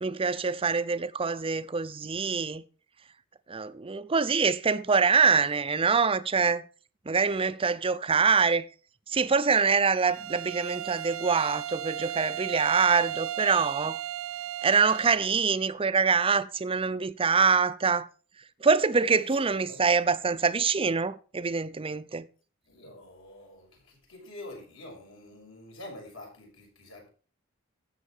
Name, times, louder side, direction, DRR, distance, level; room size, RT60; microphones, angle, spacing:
voice 1, 0.0-2.6 3.5-6.6 7.1-8.7 9.1-14.0 14.6-18.1 18.6-22.3, right 5 dB, 25° right, 0.6 m, -25 dB
Bowed string instrument, 10.0-15.3, right 12 dB, 70° right, 0.6 m, -35 dB
voice 2, 19.3-19.8 22.6-27.1, left 1 dB, 70° left, 6.2 m, -47 dB
12.5 x 8.2 x 4.6 m
head